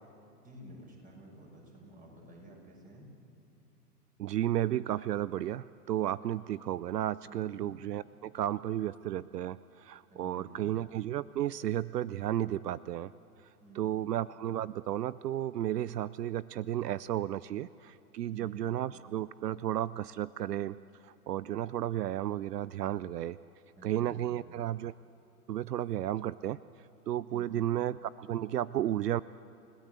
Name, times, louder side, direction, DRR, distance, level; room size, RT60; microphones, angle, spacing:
voice 1, 0.4-3.1 7.3-7.7 10.1-10.7 13.6-14.1 18.3-18.8 23.8-24.3 27.3-27.7, right 1 dB, 15° right, 0 dB, 6.0 m, -52 dB
voice 2, 4.2-13.1 13.7-20.8 21.0-23.4 23.8-24.9 25.5-26.6 27.1-29.2, right 12 dB, 80° right, 19 dB, 0.6 m, -33 dB
29.0 x 17.0 x 8.1 m, 2.8 s
hypercardioid pair, 115°, 48 cm